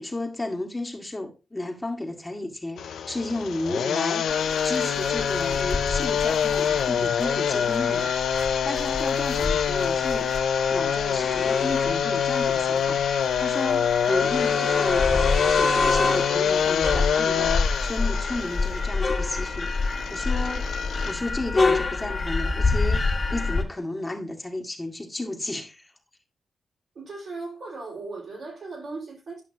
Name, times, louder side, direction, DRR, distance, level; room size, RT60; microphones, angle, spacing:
voice 1, 0.0-8.1 8.6-10.3 10.7-20.7 21.1-25.9, left 2 dB, 20° left, 1.8 m, -33 dB
sound 1, 2.8-21.1, left 8 dB, 85° left, 0.5 m, -26 dB
sound 2, 4.3-23.6, left 3 dB, 40° left, 1.8 m, -28 dB
voice 2, 26.9-29.4, right 3 dB, 70° right, 4.5 m, -37 dB
11.0 x 5.7 x 2.8 m
supercardioid pair, 50°, 0 cm